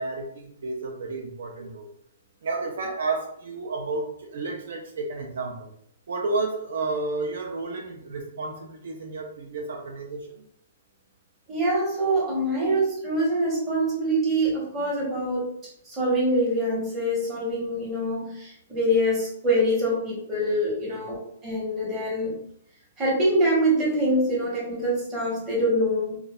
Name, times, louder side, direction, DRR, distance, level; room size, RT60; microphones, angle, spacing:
voice 1, 0.0-1.9 2.4-5.7 6.1-10.4 20.9-21.1, right 3 dB, 60° right, 2 dB, 0.4 m, -31 dB
voice 2, 11.5-15.5 15.8-22.4 23.0-26.2, right 1 dB, 10° right, -6 dB, 0.8 m, -24 dB
2.3 x 2.0 x 2.6 m, 0.66 s
hypercardioid pair, 175°, 0 cm